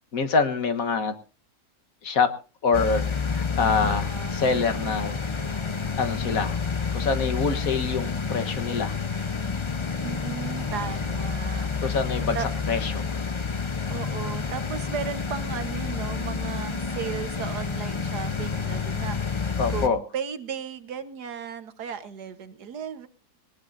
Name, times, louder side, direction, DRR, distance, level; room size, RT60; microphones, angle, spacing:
voice 1, 0.1-1.1 2.0-2.3 2.6-5.4 6.0-6.6 6.9-9.0 11.8-12.4 12.7-13.2 19.6-20.0, left 4 dB, 60° left, 9 dB, 1.7 m, -25 dB
sound 1, 2.7-19.9, left 5 dB, 25° left, 0.7 m, -29 dB
voice 2, 3.8-4.3 10.0-11.7 12.3-12.5 13.9-23.1, right 7 dB, 85° right, 11 dB, 1.8 m, -35 dB
sound 2, 5.2-12.4, right 2 dB, 5° right, 4.3 m, -51 dB
20.5 x 19.0 x 2.6 m, 0.34 s
omnidirectional pair, 1.7 m